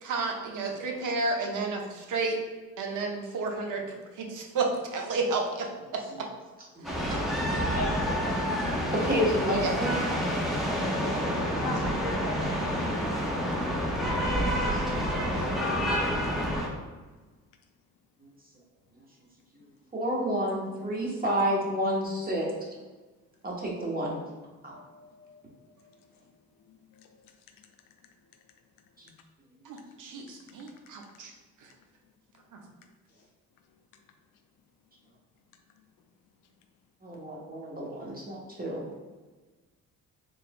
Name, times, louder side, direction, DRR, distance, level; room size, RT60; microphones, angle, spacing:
voice 1, 0.0-2.4 2.8-3.8 4.2-6.3 6.8-6.9 9.6-9.7 15.3-15.5 29.6-31.3 32.5-32.6, right 3 dB, 65° right, 2 dB, 0.8 m, -31 dB
sound 1, 6.8-16.7, equal, ahead, 0.8 m, -28 dB
voice 2, 7.7-8.7 11.6-12.8, left 1 dB, 45° left, -4 dB, 1.2 m, -36 dB
voice 3, 8.7-10.0 15.1-15.4 19.9-22.5 23.4-24.2 24.6-24.7 29.0-29.1 37.0-38.8, equal, 25° right, -3 dB, 1.2 m, -30 dB
voice 4, 24.7-26.3 26.7-27.3, left 5 dB, 80° left, 5 dB, 0.5 m, -58 dB
4.2 x 3.3 x 2.3 m, 1.3 s
supercardioid pair, 75°, 34 cm